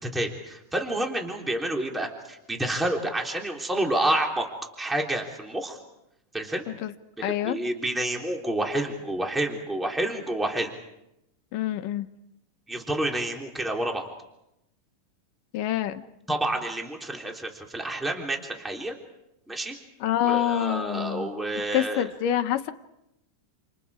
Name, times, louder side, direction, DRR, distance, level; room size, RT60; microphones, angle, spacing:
voice 1, 0.0-4.5 4.8-5.8 6.3-6.7 7.2-10.7 12.7-14.1 16.3-18.9 19.5-19.7 20.2-22.1, right 1 dB, ahead, 1 dB, 3.0 m, -29 dB
voice 2, 7.2-7.6 11.5-12.1 15.5-16.0 20.0-21.3 21.7-22.7, left 11 dB, 80° left, 9 dB, 2.6 m, -26 dB
29.5 x 29.0 x 5.0 m, 0.85 s
omnidirectional pair, 3.8 m